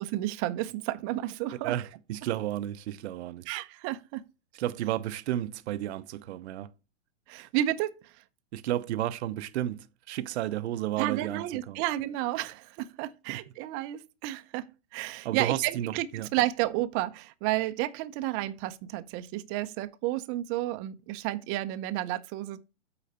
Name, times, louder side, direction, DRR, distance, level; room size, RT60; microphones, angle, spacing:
voice 1, 0.1-1.7 3.5-4.2 7.3-8.0 11.0-14.6 14.9-16.1 16.3-22.6, right 15 dB, 35° right, 0.8 m, -31 dB
voice 2, 1.6-3.5 4.5-6.7 7.4-7.5 8.5-11.8 13.3-13.4 15.2-16.3, right 13 dB, 65° right, 0.8 m, -32 dB
8.4 x 4.9 x 4.2 m
hypercardioid pair, 135°, 36 cm